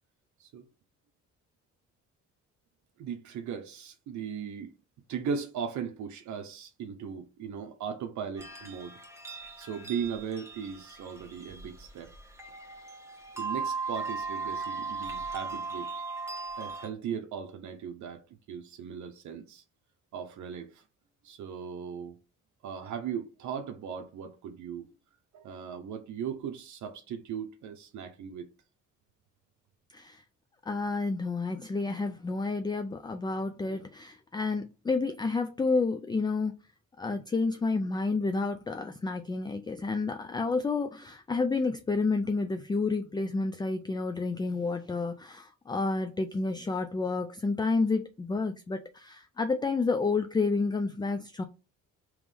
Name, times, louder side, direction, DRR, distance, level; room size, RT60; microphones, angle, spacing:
voice 1, 3.0-4.7 5.1-9.0 9.6-12.1 13.4-15.9 16.6-19.6 20.1-20.8 21.2-22.2 22.6-24.9 25.3-28.5, right 7 dB, 70° right, 0.7 m, -38 dB
sound 1, 8.4-16.9, right 4 dB, 10° right, 1.2 m, -38 dB
voice 2, 30.7-36.5 37.0-51.4, left 3 dB, 15° left, 0.3 m, -30 dB
3.6 x 3.0 x 3.3 m
cardioid pair, 90°, 30 cm